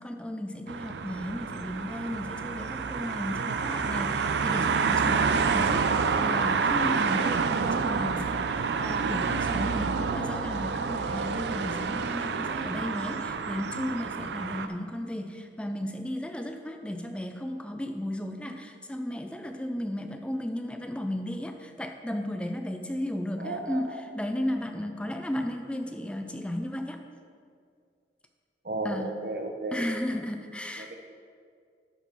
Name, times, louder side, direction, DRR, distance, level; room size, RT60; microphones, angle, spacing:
voice 1, 0.0-27.0 28.8-29.1 29.7-30.9, left 1 dB, 5° left, 5 dB, 0.4 m, -34 dB
sound 1, 0.7-14.7, right 5 dB, 75° right, 0.4 m, -28 dB
voice 2, 23.4-24.0 28.6-29.8 30.8-30.9, right 2 dB, 55° right, 4 dB, 0.8 m, -34 dB
12.5 x 4.3 x 4.5 m, 2.2 s
head